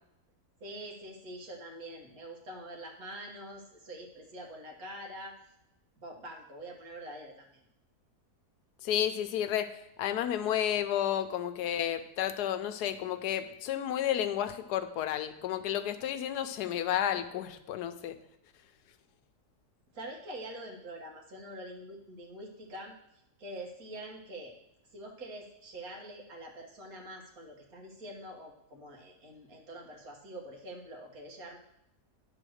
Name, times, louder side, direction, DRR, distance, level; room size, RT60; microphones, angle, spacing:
voice 1, 0.6-5.4 6.0-7.6 19.9-22.9 23.4-24.5 24.9-31.6, right 1 dB, 65° right, 0 dB, 1.8 m, -45 dB
voice 2, 8.8-9.7 10.0-18.2, left 10 dB, 85° left, 10 dB, 1.2 m, -31 dB
10.0 x 3.8 x 6.3 m, 0.82 s
omnidirectional pair, 1.7 m